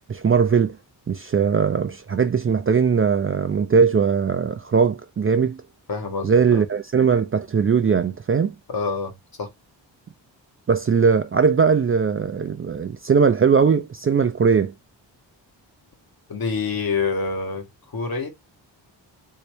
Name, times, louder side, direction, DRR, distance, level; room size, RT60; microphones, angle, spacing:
voice 1, 0.1-0.8 1.1-5.6 6.2-8.5 10.7-14.7, right 6 dB, 30° right, 0.4 m, -20 dB
voice 2, 5.9-6.6 8.7-9.5 16.3-17.7 17.9-18.3, left 4 dB, 50° left, 1.2 m, -27 dB
3.3 x 2.7 x 3.1 m
cardioid pair, 80°, 45 cm